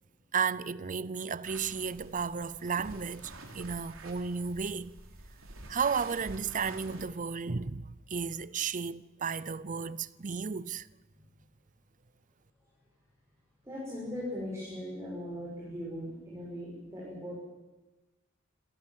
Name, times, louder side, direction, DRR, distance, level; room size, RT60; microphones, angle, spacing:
voice 1, 0.3-5.0 5.7-10.9, right 6 dB, 40° right, 0.6 m, -33 dB
sound 1, 1.4-7.1, right 2 dB, 75° right, 3.6 m, -48 dB
voice 2, 13.6-17.4, left 1 dB, 15° right, 6.0 m, -39 dB
25.5 x 18.0 x 7.4 m
head